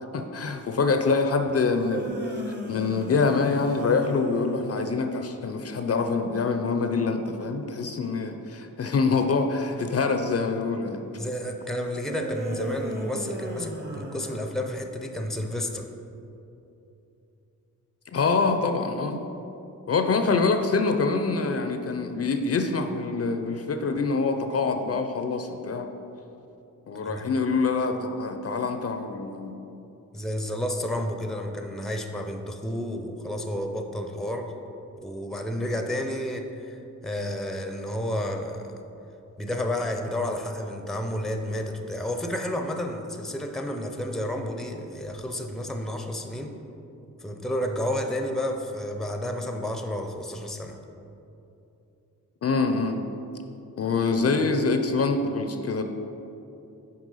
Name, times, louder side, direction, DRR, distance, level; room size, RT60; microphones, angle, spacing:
voice 1, 0.1-2.1 2.5-11.0 18.1-19.2 19.9-25.9 26.9-29.6 52.4-53.0 53.8-55.8, left 4 dB, 45° left, 6 dB, 0.5 m, -25 dB
sound 1, 1.6-4.9 12.0-15.0, right 1 dB, 30° right, 1.0 m, -36 dB
voice 2, 11.2-15.9 27.0-27.3 30.1-34.5 35.0-38.7 39.4-46.5 47.2-50.8, left 1 dB, ahead, 5 dB, 0.6 m, -31 dB
6.3 x 4.4 x 5.5 m, 2.9 s
cardioid pair, 85°, 33 cm